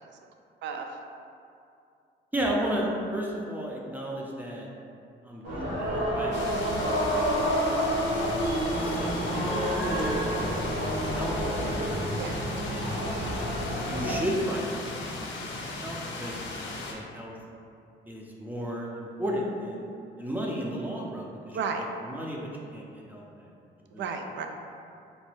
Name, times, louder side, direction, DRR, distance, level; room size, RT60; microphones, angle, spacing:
voice 1, 0.6-1.0 12.2-12.4 21.5-21.9 23.9-24.5, right 5 dB, 65° right, 4 dB, 0.4 m, -33 dB
voice 2, 2.3-4.7 5.2-7.2 7.9-8.3 8.8-10.5 10.9-12.1 12.6-13.0 13.8-17.4 18.1-19.9 20.2-21.6 22.0-23.4 23.9-24.0, equal, 10° right, -3 dB, 0.5 m, -34 dB
sound 1, 5.4-14.2, equal, 90° right, 1.0 m, -29 dB
sound 2, 6.3-16.9, left 2 dB, 65° left, 0.6 m, -37 dB
3.9 x 2.2 x 3.1 m, 2.5 s
cardioid pair, 90°, 20 cm